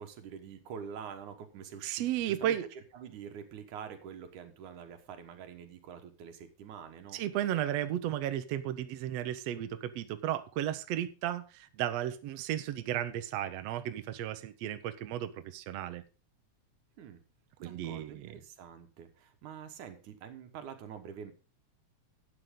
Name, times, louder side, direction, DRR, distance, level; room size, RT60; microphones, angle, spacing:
voice 1, 0.0-7.2 17.0-17.2 17.6-21.3, right 7 dB, 85° right, 7 dB, 2.9 m, -46 dB
voice 2, 1.8-2.7 7.1-16.0 17.6-18.3, right 12 dB, 70° right, 10 dB, 1.8 m, -34 dB
12.0 x 9.2 x 3.7 m, 0.33 s
omnidirectional pair, 3.4 m